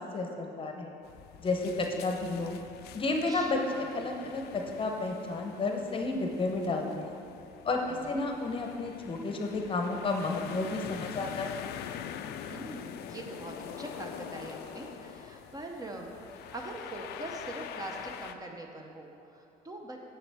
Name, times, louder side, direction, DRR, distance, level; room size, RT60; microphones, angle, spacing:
voice 1, 0.1-0.9 1.4-2.6 2.9-7.1 7.6-11.7, left 3 dB, 30° left, 2 dB, 0.8 m, -32 dB
sound 1, 1.0-18.3, left 9 dB, 75° left, 0.4 m, -44 dB
voice 2, 3.0-4.0 7.8-8.3 12.5-20.0, right 2 dB, 20° right, 2 dB, 0.6 m, -43 dB
7.0 x 7.0 x 3.4 m, 2.7 s
cardioid pair, 110°, 17 cm